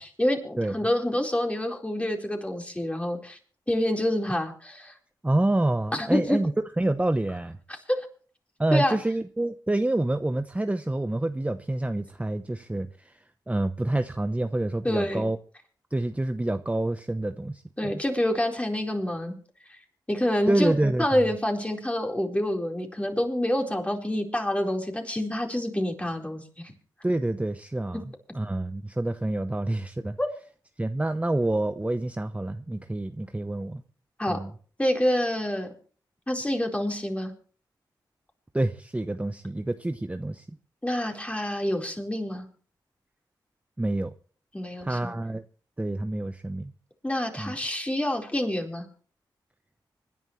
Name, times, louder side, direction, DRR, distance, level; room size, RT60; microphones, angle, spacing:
voice 1, 0.0-3.4 3.7-4.9 5.9-6.4 8.0-8.1 8.7-9.0 14.8-15.3 17.8-19.4 19.7-19.8 20.1-20.7 21.0-26.4 30.2-30.3 34.2-34.4 34.8-35.7 36.3-37.3 40.8-42.4 44.5-45.1 47.0-48.9, left 1 dB, 15° left, 4.4 m, -27 dB
voice 2, 5.2-7.6 8.6-15.4 15.9-17.9 20.5-21.1 27.0-30.2 30.8-33.8 34.3-34.5 38.5-40.5 43.8-44.1 44.8-45.4 45.8-46.7 47.4-47.5, right 1 dB, 15° right, 0.9 m, -27 dB
25.5 x 11.0 x 3.2 m
cardioid pair, 50°, 8 cm